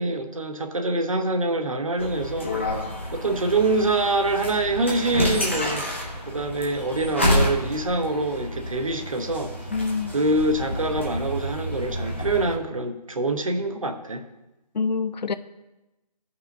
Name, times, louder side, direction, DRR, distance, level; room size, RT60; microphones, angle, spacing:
voice 1, 0.0-5.9 6.3-9.5 10.1-14.2, right 2 dB, 50° right, 0.9 m, -25 dB
sound 1, 2.0-12.5, left 1 dB, 20° left, 0.7 m, -29 dB
voice 2, 9.7-10.1 14.7-15.3, left 4 dB, 85° left, 0.6 m, -26 dB
13.5 x 5.6 x 2.6 m
figure-of-eight pair, 180°, 21 cm